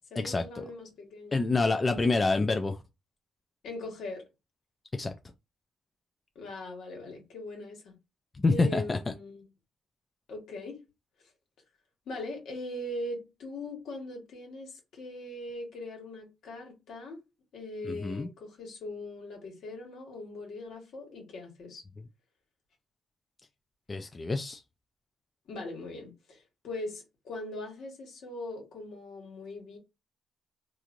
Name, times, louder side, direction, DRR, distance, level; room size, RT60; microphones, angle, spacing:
voice 1, 0.1-1.4 1.8-2.2 3.6-4.2 6.3-7.9 8.5-9.5 10.3-10.8 12.1-17.2 17.5-21.8 25.5-29.8, left 2 dB, 70° left, 1.4 m, -40 dB
voice 2, 1.3-2.8 5.0-5.1 8.4-9.0 17.8-18.3 23.9-24.6, left 3 dB, 25° left, 0.4 m, -27 dB
3.1 x 2.5 x 2.5 m
cardioid pair, 90°, 0 cm